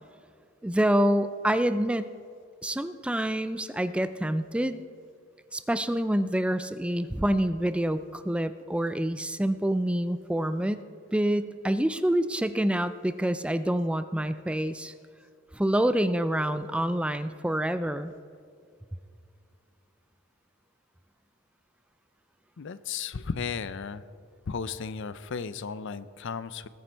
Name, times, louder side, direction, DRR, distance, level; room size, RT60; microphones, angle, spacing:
voice 1, 0.6-2.1 2.6-4.8 5.5-10.8 11.1-14.9 15.5-18.1, right 1 dB, 5° right, 12 dB, 0.3 m, -27 dB
voice 2, 22.6-24.0 24.5-26.7, left 5 dB, 65° left, 15 dB, 0.5 m, -34 dB
20.0 x 9.4 x 4.5 m, 2.3 s
head